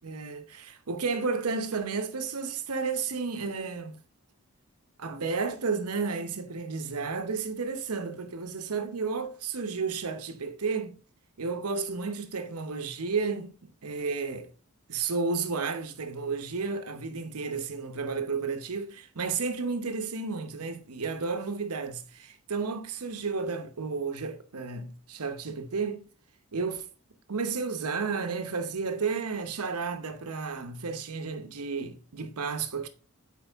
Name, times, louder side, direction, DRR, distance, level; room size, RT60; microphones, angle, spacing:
voice 1, 0.0-4.0 5.0-11.0 11.4-13.5 13.8-14.5 14.9-26.0 26.5-26.8 27.3-32.9, right 4 dB, 85° right, 0.9 m, -32 dB
8.3 x 4.5 x 3.5 m
head